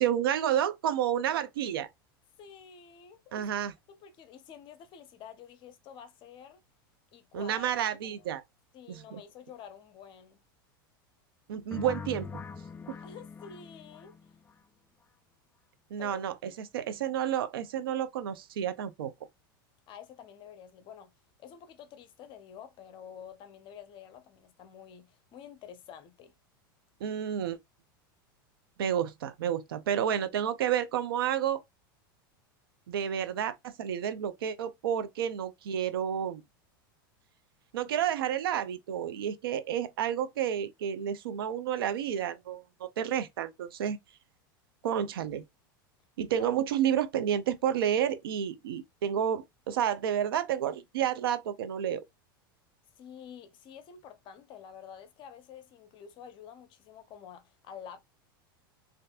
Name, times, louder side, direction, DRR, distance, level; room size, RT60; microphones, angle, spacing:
voice 1, 0.0-1.9 3.3-3.7 7.3-8.4 8.9-9.2 11.5-12.4 12.9-13.0 15.9-19.1 27.0-27.6 28.8-31.6 32.9-36.4 37.7-44.0 44.8-45.4 46.2-52.0, right 9 dB, 80° right, 0.5 m, -30 dB
voice 2, 2.4-3.5 3.9-6.6 7.1-8.3 8.7-10.4 13.0-14.4 16.0-16.6 19.9-21.1 21.4-26.3 46.4-46.5 53.0-58.0, left 8 dB, 45° left, 0.8 m, -49 dB
sound 1, 11.7-14.6, left 5 dB, 15° left, 0.3 m, -42 dB
3.3 x 2.6 x 2.4 m
hypercardioid pair, 105°, 12 cm